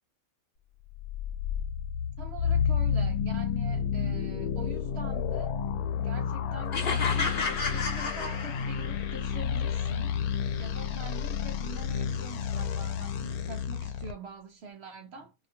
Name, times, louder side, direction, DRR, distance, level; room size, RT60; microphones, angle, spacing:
sound 1, 0.9-14.1, left 7 dB, 85° left, 1.1 m, -30 dB
voice 1, 2.2-5.6 6.0-10.2 10.5-15.3, right 3 dB, 60° right, 0.7 m, -44 dB
sound 2, 6.7-9.0, left 4 dB, 45° left, 0.9 m, -32 dB
2.7 x 2.2 x 2.7 m
omnidirectional pair, 1.5 m